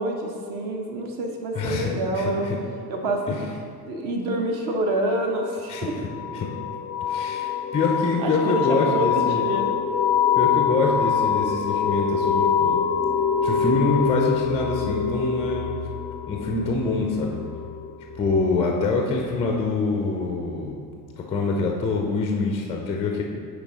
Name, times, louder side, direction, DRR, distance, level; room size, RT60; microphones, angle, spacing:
voice 1, 0.0-2.5 2.9-3.4 3.8-5.9 6.3-6.4 8.2-9.7, right 1 dB, 45° right, 1 dB, 1.1 m, -27 dB
voice 2, 1.5-2.6 3.3-3.5 5.7-5.9 6.3-6.5 7.1-9.4 10.3-12.8 13.4-15.7 16.3-17.4 18.1-20.8 21.2-23.2, left 3 dB, 15° left, 1 dB, 0.4 m, -25 dB
sound 1, 5.7-20.2, left 7 dB, 90° left, 0.5 m, -25 dB
9.7 x 3.3 x 4.0 m, 2.2 s
figure-of-eight pair, 70°, 49 cm